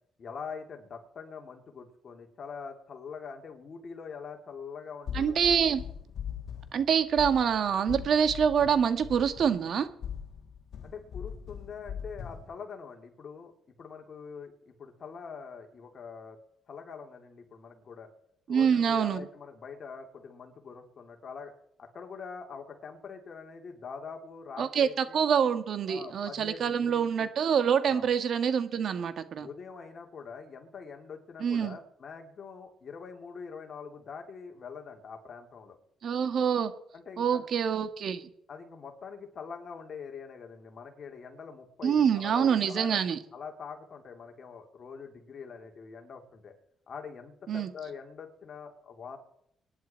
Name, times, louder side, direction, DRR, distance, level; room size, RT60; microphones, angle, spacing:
voice 1, 0.2-5.6 10.8-13.5 13.8-16.4 16.7-18.1 18.5-21.5 21.8-25.2 25.9-27.3 27.8-28.1 29.4-35.8 36.9-37.5 38.5-43.0 43.3-46.5 46.9-49.2, left 5 dB, 50° left, 3 dB, 3.2 m, -44 dB
sound 1, 5.1-12.5, left 8 dB, 70° left, 2.0 m, -41 dB
voice 2, 5.1-5.8 6.7-9.9 18.5-19.3 24.6-29.5 31.4-31.8 36.0-36.7 37.2-38.3 41.8-43.2 47.5-47.7, right 7 dB, 60° right, 10 dB, 1.6 m, -26 dB
24.5 x 11.0 x 4.6 m, 0.74 s
cardioid pair, 90°, 0 cm